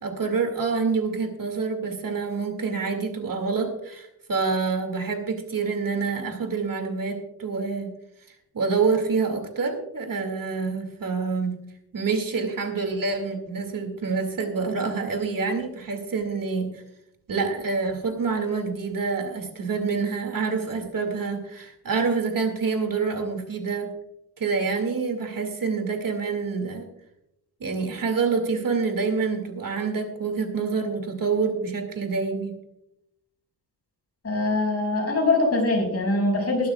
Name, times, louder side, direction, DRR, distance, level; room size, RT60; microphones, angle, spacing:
voice 1, 0.0-7.9 8.5-11.6 11.9-16.8 17.3-23.9 24.4-26.9 27.6-32.6, right 4 dB, 55° right, 5 dB, 2.2 m, -27 dB
voice 2, 34.2-36.7, left 2 dB, 40° left, 1 dB, 5.6 m, -23 dB
21.5 x 12.0 x 2.3 m, 0.83 s
wide cardioid pair, 135°, 39 cm